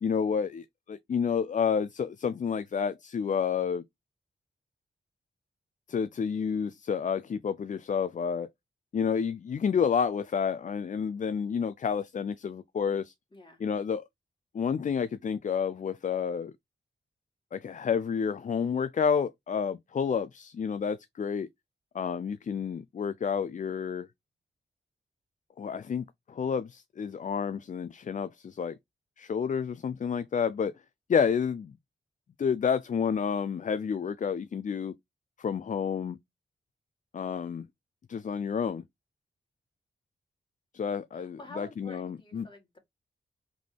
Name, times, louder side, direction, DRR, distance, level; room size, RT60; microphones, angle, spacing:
voice 1, 0.0-3.8 5.9-8.5 8.9-13.1 13.6-14.0 14.5-16.5 17.5-21.5 21.9-24.1 25.6-28.7 29.2-30.7 31.1-31.7 32.4-34.9 35.4-36.2 37.1-37.7 38.1-38.8 40.7-42.5, left 6 dB, 40° left, 0.4 m, -30 dB
voice 2, 13.3-13.6 41.1-42.8, left 1 dB, 25° left, 2.0 m, -48 dB
3.7 x 3.5 x 3.3 m
cardioid pair, 50°, 19 cm